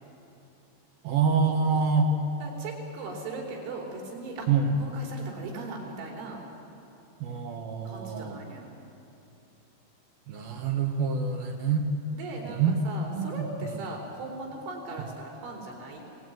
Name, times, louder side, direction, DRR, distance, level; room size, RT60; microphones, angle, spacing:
voice 1, 1.0-2.1 4.5-4.7 7.2-8.4 10.3-11.8 12.4-12.8 13.1-13.3, right 5 dB, 60° right, 3 dB, 2.9 m, -26 dB
voice 2, 2.4-6.4 7.9-8.7 12.1-16.0, right 2 dB, 75° right, 1 dB, 6.4 m, -39 dB
27.0 x 19.5 x 9.4 m, 2.8 s
omnidirectional pair, 5.4 m